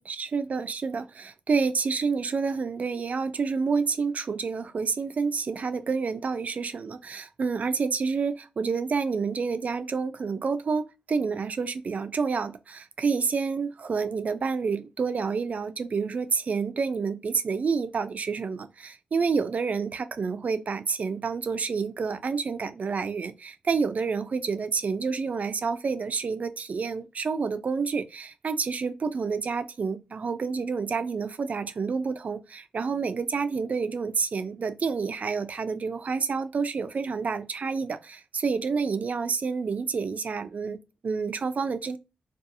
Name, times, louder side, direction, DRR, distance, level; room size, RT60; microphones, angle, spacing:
voice 1, 0.0-42.0, right 5 dB, 55° right, 0.3 m, -29 dB
2.7 x 2.3 x 2.6 m
cardioid pair, 55°, 3 cm